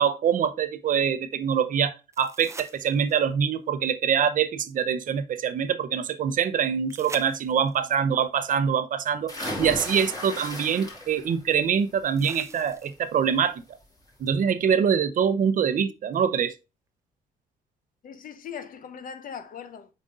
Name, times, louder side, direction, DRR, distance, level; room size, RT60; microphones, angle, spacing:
voice 1, 0.0-13.6 14.2-16.5, right 7 dB, 55° right, 0.7 m, -24 dB
sound 1, 2.1-3.4 6.9-7.9 9.8-9.9 12.2-13.2 16.1-16.2, right 3 dB, 15° right, 0.6 m, -43 dB
sound 2, 9.3-11.4 11.8-12.2 13.6-13.7 14.1-14.2, left 1 dB, 20° left, 2.8 m, -35 dB
voice 2, 18.0-19.9, left 7 dB, 55° left, 0.9 m, -40 dB
7.5 x 5.1 x 2.5 m
cardioid pair, 120°, 17 cm